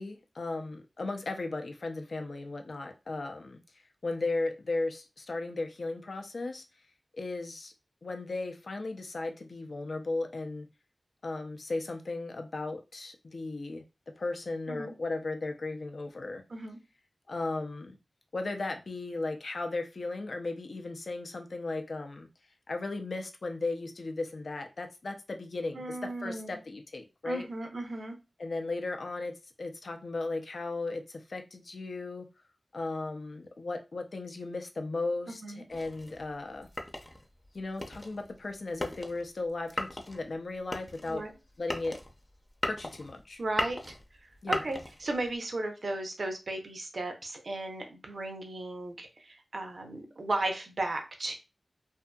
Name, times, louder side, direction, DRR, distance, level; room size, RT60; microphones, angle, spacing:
voice 1, 0.0-3.6 4.0-6.6 7.1-7.7 8.0-10.7 11.2-13.8 14.2-16.4 17.3-18.0 18.3-22.3 22.7-27.5 28.4-32.3 32.7-36.7 37.5-41.3 41.6-42.0 42.6-43.4 44.4-44.6, left 2 dB, 70° left, 5 dB, 0.5 m, -36 dB
voice 2, 25.7-26.5 27.2-28.2 35.4-35.6 41.1-41.3 43.4-43.8 44.5-51.3, right 2 dB, 70° right, 4 dB, 0.7 m, -35 dB
sound 1, 35.7-45.4, left 1 dB, 25° left, 0.6 m, -38 dB
2.7 x 2.5 x 2.3 m, 0.28 s
cardioid pair, 45°, 0 cm